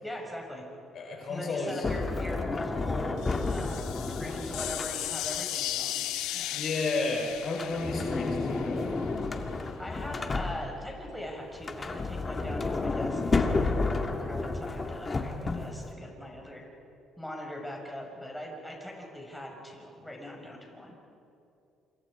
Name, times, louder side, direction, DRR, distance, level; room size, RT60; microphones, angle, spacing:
voice 1, 0.0-0.6 1.3-3.1 3.5-6.6 9.6-16.6 17.2-21.0, left 1 dB, 5° left, -1 dB, 5.7 m, -41 dB
voice 2, 0.9-1.8 6.5-8.8, left 3 dB, 50° left, 1 dB, 4.6 m, -32 dB
Sliding door, 1.8-5.4 7.4-11.0 11.5-15.9, left 3 dB, 25° left, 2.0 m, -31 dB
sound 1, 3.2-9.1, left 14 dB, 85° left, 0.8 m, -36 dB
28.0 x 26.0 x 5.0 m, 2.7 s
cardioid pair, 100°, 0 cm